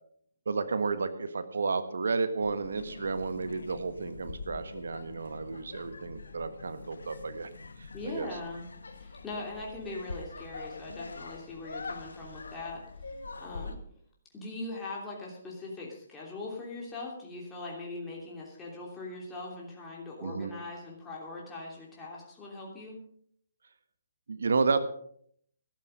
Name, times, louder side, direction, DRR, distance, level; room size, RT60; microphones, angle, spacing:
voice 1, 0.4-7.5 7.8-8.3 20.2-20.5 24.3-24.8, right 4 dB, 65° right, 10 dB, 1.5 m, -31 dB
sound 1, 2.4-13.8, left 3 dB, 70° left, 1.5 m, -44 dB
voice 2, 7.9-8.7 9.0-12.8 13.4-13.8 14.3-23.0, left 2 dB, 15° left, -3 dB, 3.1 m, -41 dB
13.5 x 12.5 x 5.2 m, 0.64 s
figure-of-eight pair, 135°, 0 cm